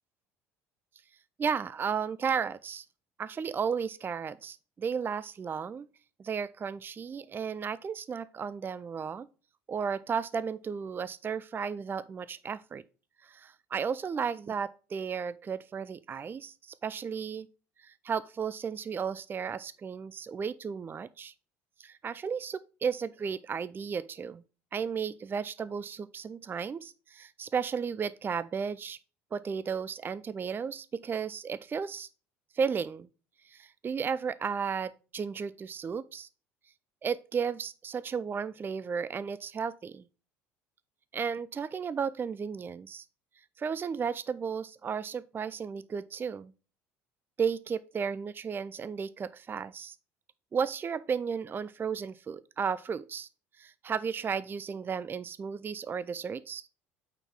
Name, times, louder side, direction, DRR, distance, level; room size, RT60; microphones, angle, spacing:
voice 1, 1.4-2.9 3.2-5.9 6.2-9.3 9.7-12.8 13.2-17.5 17.8-21.3 21.8-24.4 24.7-29.0 29.3-32.1 32.5-33.1 33.4-36.3 37.0-40.0 41.1-43.0 43.6-46.5 47.4-50.0 50.5-53.3 53.6-56.7, right 6 dB, 30° right, 0.4 m, -34 dB
8.8 x 4.5 x 3.6 m
hypercardioid pair, 65°, 8 cm